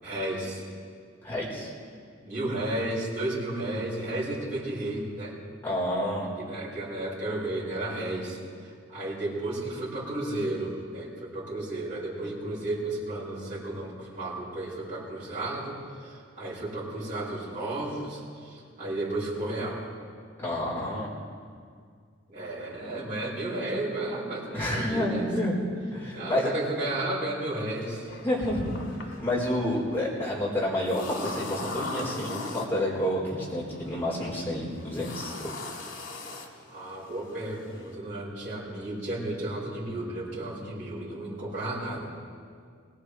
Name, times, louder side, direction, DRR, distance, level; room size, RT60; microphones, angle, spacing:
voice 1, 0.0-0.6 2.2-5.4 6.4-19.9 22.3-25.3 26.1-28.1 29.5-29.8 36.7-42.0, right 1 dB, 40° right, -9 dB, 5.3 m, -33 dB
voice 2, 1.2-1.7 5.6-6.3 20.4-21.1 24.5-25.6 25.9-26.5 28.2-28.7 29.1-35.3, left 1 dB, 10° left, -7 dB, 4.1 m, -29 dB
sound 1, 27.8-38.0, left 3 dB, 90° left, 2.1 m, -41 dB
21.5 x 18.5 x 3.3 m, 2.1 s
head